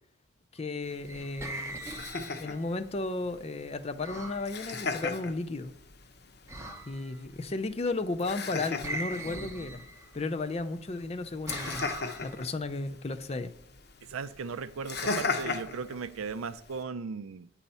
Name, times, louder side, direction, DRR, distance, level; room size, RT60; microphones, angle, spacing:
voice 1, 0.5-1.8 2.4-5.7 6.9-9.8 10.1-11.9 12.2-13.5, left 3 dB, 30° left, 0.4 m, -34 dB
Laughter, 0.8-16.8, left 4 dB, 50° left, 0.7 m, -39 dB
sound 1, 0.8-2.8 4.0-4.5 6.5-7.2 8.8-10.3 11.5-12.5 14.9-16.1, right 2 dB, 15° right, 0.6 m, -41 dB
voice 2, 14.0-17.5, right 5 dB, 80° right, 0.4 m, -37 dB
9.0 x 4.1 x 5.5 m
head